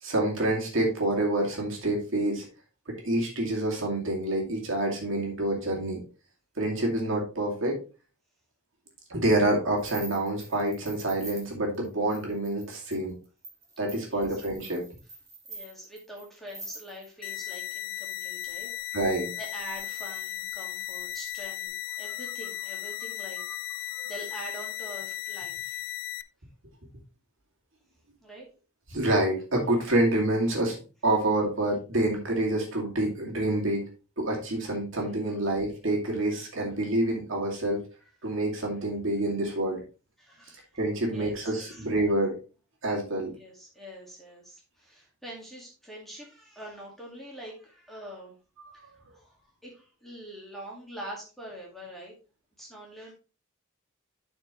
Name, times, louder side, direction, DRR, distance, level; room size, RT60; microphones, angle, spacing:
voice 1, 0.0-2.4 2.9-6.0 6.6-7.8 9.1-13.1 13.8-14.8 18.9-19.3 24.0-24.1 28.9-30.8 31.0-33.9 34.2-37.8 38.2-39.8 40.7-42.3 42.8-43.3 48.6-48.8, right 1 dB, 60° right, -1 dB, 2.4 m, -27 dB
sound 1, 9.8-17.4 17.9-18.8 19.4-21.7, right 2 dB, 15° right, 1.8 m, -47 dB
voice 2, 13.9-14.4 15.5-19.0 19.4-23.4 23.8-25.9 28.2-28.5 35.1-35.5 40.2-40.7 41.1-41.9 43.4-48.3 48.7-52.1 52.6-53.1, equal, ahead, -3 dB, 1.9 m, -45 dB
sound 2, 17.2-26.2, left 16 dB, 55° left, 0.4 m, -36 dB
11.5 x 4.5 x 3.1 m, 0.34 s
head